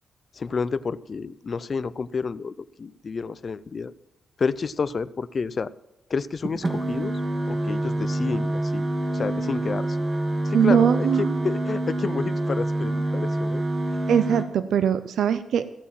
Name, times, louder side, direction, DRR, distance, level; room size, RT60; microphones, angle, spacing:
voice 1, 0.3-3.9 4.4-5.7 6.1-7.2 7.5-10.0 10.4-13.6, left 5 dB, 40° left, 15 dB, 0.5 m, -30 dB
sound 1, 6.4-14.4, right 1 dB, 30° right, 1.7 m, -26 dB
voice 2, 10.5-11.4 14.1-15.6, right 8 dB, 85° right, 13 dB, 0.6 m, -21 dB
15.5 x 8.5 x 7.4 m, 0.98 s
wide cardioid pair, 130°, 0 cm